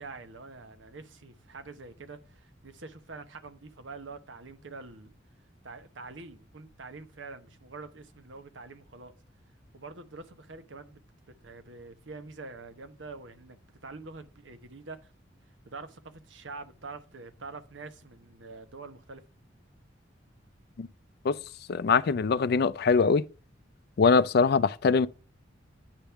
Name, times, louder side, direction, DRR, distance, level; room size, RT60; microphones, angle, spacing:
voice 1, 0.0-5.1 5.6-9.1 9.7-11.0 11.4-13.6 13.8-15.1 15.7-19.2, right 3 dB, 70° right, 1.0 m, -45 dB
voice 2, 21.7-23.2 24.0-25.1, left 5 dB, 55° left, 0.4 m, -22 dB
8.8 x 3.5 x 5.6 m
head